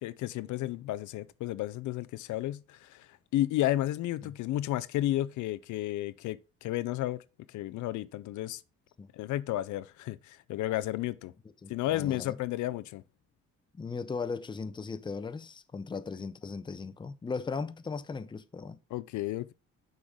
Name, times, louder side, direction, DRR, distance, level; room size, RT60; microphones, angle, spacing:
voice 1, 0.0-7.2 7.5-8.6 9.1-11.3 11.7-13.0 18.9-19.5, left 14 dB, 75° left, 0.5 m, -32 dB
voice 2, 11.6-12.4 13.8-18.8, left 4 dB, 15° left, 0.5 m, -37 dB
6.2 x 3.8 x 4.7 m
cardioid pair, 90°, 30 cm